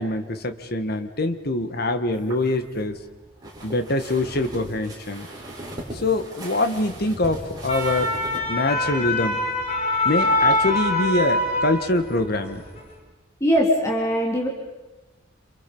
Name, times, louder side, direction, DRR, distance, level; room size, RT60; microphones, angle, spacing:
voice 1, 0.0-3.0 3.6-5.3 5.9-8.1 8.5-9.4 10.0-12.6, left 2 dB, 55° left, 8 dB, 1.6 m, -24 dB
sound 1, 2.1-8.4, right 1 dB, 20° right, 5.5 m, -39 dB
sound 2, 7.4-12.2 12.6-12.8, left 2 dB, 35° left, 4.2 m, -24 dB
voice 2, 13.4-14.5, equal, 15° left, -2 dB, 3.3 m, -21 dB
28.0 x 27.5 x 5.5 m, 1.2 s
head